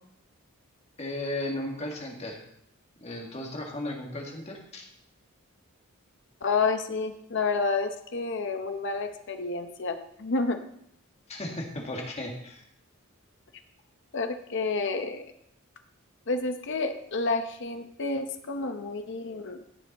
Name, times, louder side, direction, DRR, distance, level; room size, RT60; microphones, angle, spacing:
voice 1, 1.0-2.4 3.0-4.9 11.3-12.6, left 1 dB, 30° left, 0 dB, 2.0 m, -35 dB
voice 2, 6.4-10.6 14.1-15.2 16.3-19.6, left 4 dB, 55° left, 7 dB, 0.9 m, -29 dB
16.0 x 7.0 x 4.2 m, 0.74 s
head